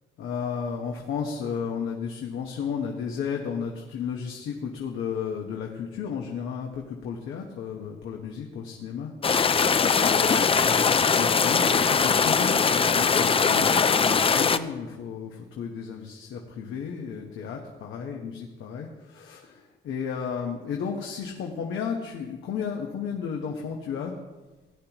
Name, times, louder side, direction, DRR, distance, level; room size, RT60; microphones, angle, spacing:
voice 1, 0.2-9.1 10.0-24.2, left 6 dB, 80° left, 0 dB, 1.3 m, -33 dB
sound 1, 9.2-14.6, left 5 dB, 30° left, 0.5 m, -21 dB
17.0 x 10.0 x 3.0 m, 1.2 s
cardioid pair, 90°, 20 cm